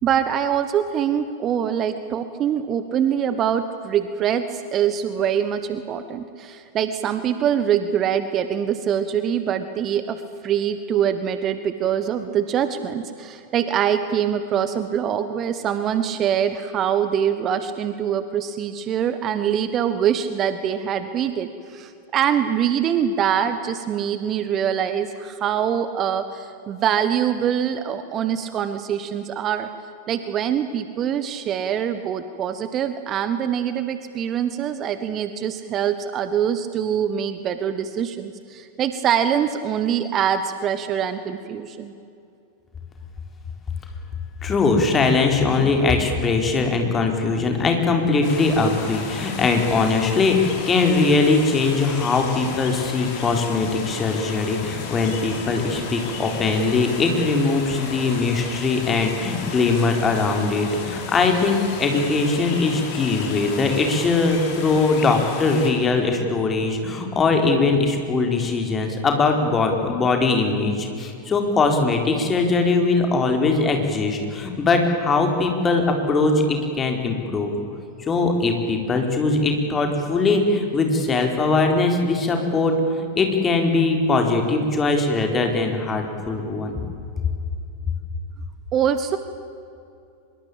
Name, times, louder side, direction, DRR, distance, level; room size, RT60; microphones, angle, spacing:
voice 1, 0.0-29.7 30.1-42.0 88.7-89.2, right 9 dB, 30° right, 11 dB, 1.3 m, -24 dB
voice 2, 44.4-77.5 78.0-86.8, left 3 dB, 20° left, 4 dB, 4.3 m, -21 dB
sound 1, 48.2-65.7, left 4 dB, 45° left, 5.1 m, -34 dB
25.0 x 22.5 x 8.7 m, 2.6 s
figure-of-eight pair, 90°, 0 cm